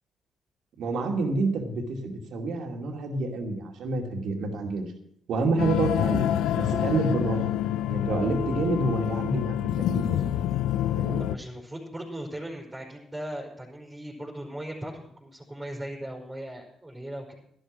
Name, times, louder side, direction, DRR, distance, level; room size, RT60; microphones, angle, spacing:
voice 1, 0.8-4.8 5.3-6.2 6.5-7.4 7.8-10.2 11.0-11.2, right 3 dB, 65° right, 3 dB, 2.5 m, -28 dB
sound 1, 5.6-11.4, left 11 dB, 75° left, 0.5 m, -27 dB
voice 2, 11.2-17.3, right 1 dB, 15° right, -3 dB, 4.7 m, -38 dB
12.5 x 11.5 x 6.1 m, 0.70 s
hypercardioid pair, 50°, 0 cm